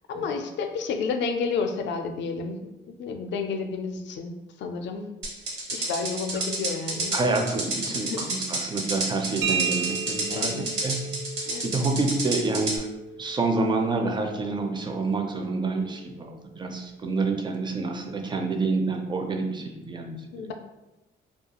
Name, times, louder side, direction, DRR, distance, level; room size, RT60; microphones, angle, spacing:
voice 1, 0.1-5.1 5.7-7.2 8.0-8.3 10.3-10.7 11.5-11.8 20.3-20.5, left 5 dB, 65° left, 5 dB, 0.4 m, -31 dB
sound 1, 5.2-12.8, right 2 dB, 65° right, 0.9 m, -30 dB
voice 2, 7.1-12.9 13.2-20.5, right 3 dB, 25° right, 4 dB, 0.4 m, -28 dB
sound 2, 9.4-17.0, right 6 dB, 85° right, 0.4 m, -36 dB
2.3 x 2.3 x 2.8 m, 0.99 s
cardioid pair, 90°, 20 cm